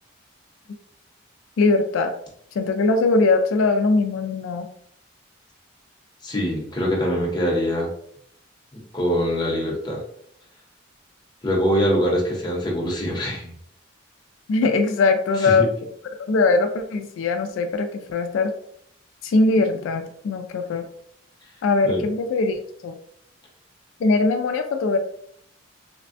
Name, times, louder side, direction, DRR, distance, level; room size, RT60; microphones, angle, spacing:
voice 1, 1.6-2.1 2.5-4.7 14.5-15.7 16.3-18.5 19.2-20.9 21.6-23.0 24.0-25.0, left 3 dB, 80° left, 6 dB, 0.3 m, -21 dB
voice 2, 6.2-7.9 8.9-10.0 11.4-13.5 15.4-15.7 21.8-22.0, equal, 20° left, -2 dB, 0.7 m, -23 dB
3.3 x 2.1 x 2.5 m, 0.67 s
head